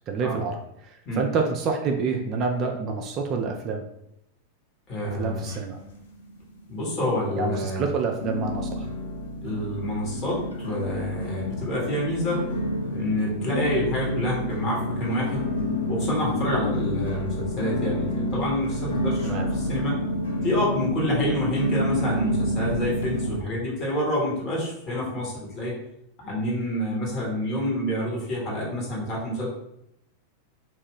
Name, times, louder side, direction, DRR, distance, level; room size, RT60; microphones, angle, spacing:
voice 1, 0.1-3.8 5.1-5.8 7.4-8.9 19.2-19.5, right 4 dB, 35° right, 3 dB, 0.3 m, -28 dB
voice 2, 4.9-5.4 6.7-7.8 9.4-12.4 12.9-15.4 15.9-20.0 20.4-25.7 26.2-29.5, left 1 dB, 35° left, -4 dB, 1.1 m, -28 dB
sound 1, 5.0-6.0 6.2-6.9 7.4-7.5 8.2-23.4, left 1 dB, 65° left, 0.6 m, -29 dB
2.4 x 2.2 x 3.4 m, 0.78 s
figure-of-eight pair, 90°, 0 cm